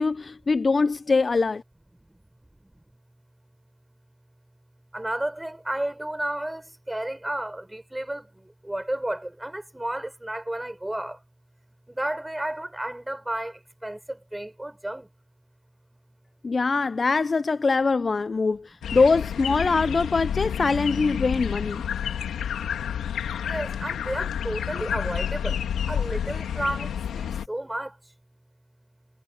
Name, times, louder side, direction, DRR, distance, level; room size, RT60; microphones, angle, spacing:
voice 1, 0.0-1.6 16.4-21.8, left 4 dB, 50° left, 0.6 m, -23 dB
voice 2, 4.9-11.2 11.9-15.1 23.4-28.0, right 1 dB, 15° right, 6.7 m, -32 dB
sound 1, 18.8-27.5, left 8 dB, 90° left, 2.0 m, -30 dB
cardioid pair, 50°, 0 cm